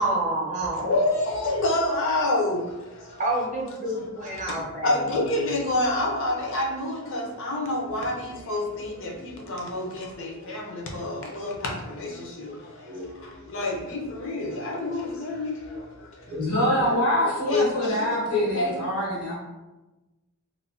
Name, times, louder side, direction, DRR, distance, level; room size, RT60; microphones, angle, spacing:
voice 1, 0.0-0.8 3.2-5.0 9.6-9.9 12.9-13.1 16.3-16.4 16.7-17.3, right 1 dB, 35° right, 0.5 m, -29 dB
voice 2, 0.7-3.2 3.9-16.4 17.5-18.8, left 2 dB, 55° left, 0.5 m, -28 dB
voice 3, 16.3-19.4, equal, 85° left, 1.0 m, -25 dB
3.0 x 2.1 x 2.5 m
head